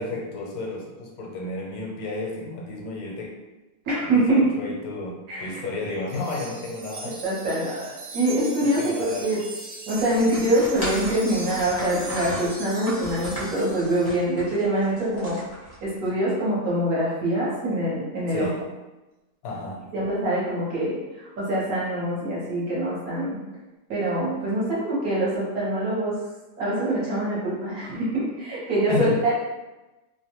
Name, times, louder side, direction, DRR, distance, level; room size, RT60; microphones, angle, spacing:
voice 1, 0.0-3.3 4.1-7.2 8.6-9.3 18.3-18.7 19.4-19.9 28.9-29.3, left 3 dB, 80° left, -2 dB, 1.2 m, -32 dB
voice 2, 3.9-4.4 5.3-5.6 7.0-9.4 9.9-15.4 15.8-18.5 19.9-23.4 23.9-26.2 26.6-29.3, right 1 dB, 60° right, -7 dB, 1.2 m, -24 dB
Wind chime, 6.1-14.3, right 3 dB, 90° right, 1.3 m, -39 dB
sound 1, 9.9-16.1, equal, 25° left, 0.5 m, -36 dB
2.9 x 2.2 x 2.9 m, 1.1 s
omnidirectional pair, 1.9 m